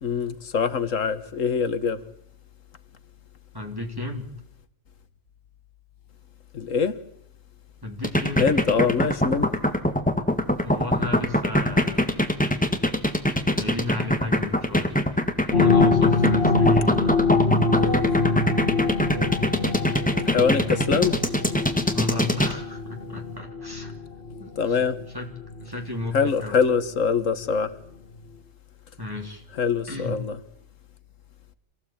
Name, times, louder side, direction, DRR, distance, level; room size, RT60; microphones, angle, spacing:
voice 1, 0.0-2.0 6.5-7.0 8.4-9.5 20.2-21.2 24.6-25.0 26.1-27.7 29.5-30.4, left 5 dB, 85° left, 1.8 m, -24 dB
voice 2, 3.5-4.3 7.8-8.4 10.6-12.5 13.5-15.0 15.4-17.2 21.9-24.1 24.4-24.8 25.1-25.3 25.6-26.6 29.0-29.4 29.9-30.2, left 2 dB, 15° right, 3.2 m, -33 dB
sound 1, 8.0-22.5, left 1 dB, 5° left, 1.7 m, -22 dB
sound 2, 15.5-26.1 26.6-26.7, left 4 dB, 50° left, 2.2 m, -25 dB
27.0 x 15.5 x 8.9 m
omnidirectional pair, 1.3 m